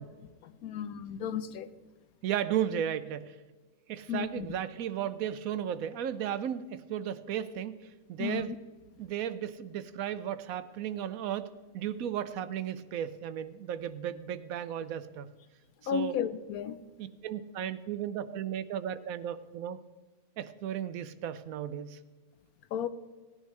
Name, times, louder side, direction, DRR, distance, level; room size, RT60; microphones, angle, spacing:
voice 1, 0.4-1.7 4.1-4.5 8.2-8.6 15.9-16.8 22.7-22.9, left 8 dB, 80° left, 12 dB, 1.2 m, -33 dB
voice 2, 2.2-3.3 3.9-7.8 8.1-8.5 9.0-11.5 11.7-15.3 15.9-16.2 17.0-19.8 20.4-22.0, right 10 dB, 75° right, 13 dB, 1.1 m, -35 dB
18.0 x 9.9 x 3.2 m, 1.4 s
omnidirectional pair, 1.5 m